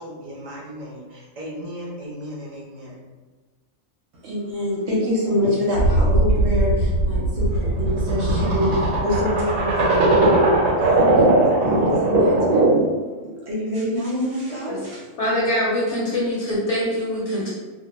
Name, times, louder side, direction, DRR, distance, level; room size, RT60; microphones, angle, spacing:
voice 1, 0.0-3.1, equal, 45° right, -4 dB, 0.5 m, -36 dB
voice 2, 4.2-12.9 13.2-15.0, left 1 dB, 65° right, -5 dB, 0.8 m, -26 dB
sound 1, 5.7-12.9, right 2 dB, 90° right, 1.0 m, -19 dB
voice 3, 15.2-17.5, left 1 dB, 65° left, -6 dB, 0.9 m, -23 dB
2.3 x 2.1 x 2.9 m, 1.3 s
omnidirectional pair, 1.4 m